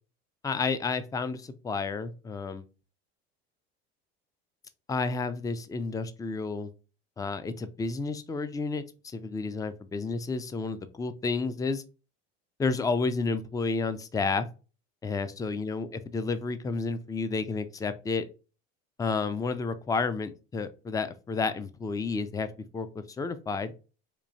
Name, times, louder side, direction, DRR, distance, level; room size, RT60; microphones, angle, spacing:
voice 1, 0.4-2.6 4.9-6.7 7.2-11.8 12.6-14.5 15.0-18.2 19.0-22.5 22.7-23.7, left 4 dB, 10° left, 12 dB, 0.4 m, -31 dB
4.4 x 2.7 x 2.6 m, 0.33 s
hypercardioid pair, 90°, 30 cm